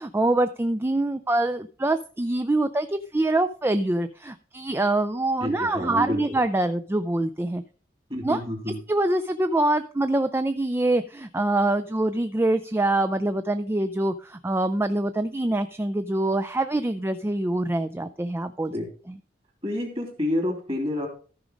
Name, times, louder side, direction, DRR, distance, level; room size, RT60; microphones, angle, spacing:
voice 1, 0.0-7.6 8.2-8.4 8.9-18.7 19.1-19.2, right 2 dB, 15° right, 10 dB, 0.3 m, -25 dB
voice 2, 5.4-6.2 8.1-8.8 18.7-18.9 19.6-21.1, left 1 dB, 30° right, 3 dB, 3.0 m, -28 dB
14.0 x 5.1 x 5.0 m, 0.41 s
head